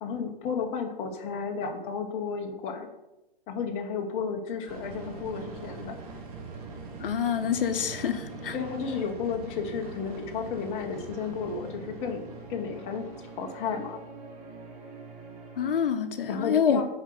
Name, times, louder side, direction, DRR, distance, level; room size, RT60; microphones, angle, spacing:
voice 1, 0.0-2.9 3.5-6.0 8.5-13.1 13.4-14.0 16.3-16.8, left 5 dB, 20° left, 3 dB, 0.9 m, -33 dB
sound 1, 4.7-15.9, right 3 dB, 40° right, 1.7 m, -42 dB
voice 2, 7.0-8.6 15.6-16.8, left 8 dB, 70° left, 9 dB, 0.8 m, -26 dB
7.2 x 5.1 x 5.3 m, 0.94 s
hypercardioid pair, 145°, 29 cm